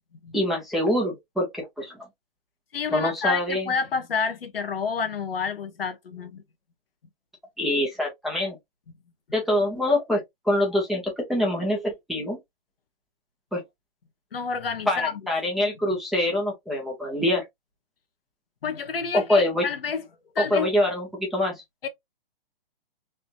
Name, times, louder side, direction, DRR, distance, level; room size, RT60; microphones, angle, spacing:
voice 1, 0.3-2.0 2.9-3.7 7.6-8.6 9.3-12.4 13.5-13.6 14.9-17.4 19.1-19.6 20.5-21.5, left 1 dB, ahead, 0.9 m, -25 dB
voice 2, 2.7-6.4 14.3-15.2 15.9-16.0 18.6-20.1 20.3-20.7 21.8-21.9, left 5 dB, 75° left, 1.0 m, -29 dB
3.4 x 2.7 x 2.6 m
hypercardioid pair, 145°, 29 cm